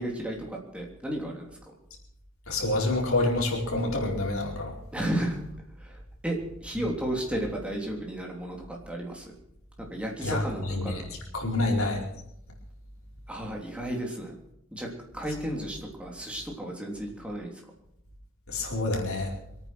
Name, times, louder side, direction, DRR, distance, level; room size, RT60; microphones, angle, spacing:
voice 1, 0.0-1.5 4.9-5.4 5.8-9.3 9.8-11.1 13.3-14.3 14.7-17.6, right 1 dB, 5° right, -1 dB, 3.3 m, -33 dB
voice 2, 2.5-4.7 10.2-10.4 10.7-10.9 11.3-12.0 18.5-19.3, left 2 dB, 80° left, -1 dB, 4.5 m, -27 dB
24.0 x 9.4 x 6.3 m, 0.78 s
head